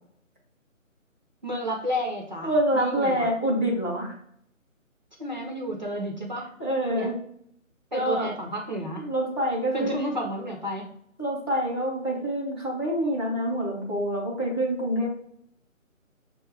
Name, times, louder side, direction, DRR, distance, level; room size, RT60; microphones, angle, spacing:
voice 1, 1.4-3.3 5.2-6.5 6.9-7.1 7.9-9.1 9.7-10.9, equal, 35° right, 0 dB, 0.5 m, -31 dB
voice 2, 2.4-4.1 6.6-7.2 7.9-8.3 9.0-10.0 11.2-15.1, right 1 dB, 20° left, -5 dB, 0.6 m, -26 dB
6.1 x 2.3 x 3.3 m, 0.68 s
figure-of-eight pair, 160°, 41 cm